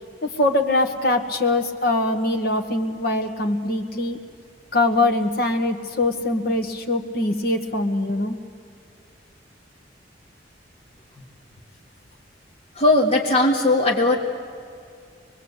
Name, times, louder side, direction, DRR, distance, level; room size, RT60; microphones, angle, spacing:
voice 1, 0.2-4.2 4.7-8.4, left 2 dB, 55° left, 4 dB, 1.7 m, -22 dB
voice 2, 12.8-14.2, left 2 dB, 35° left, -1 dB, 1.8 m, -18 dB
23.5 x 22.0 x 8.2 m, 2.4 s
head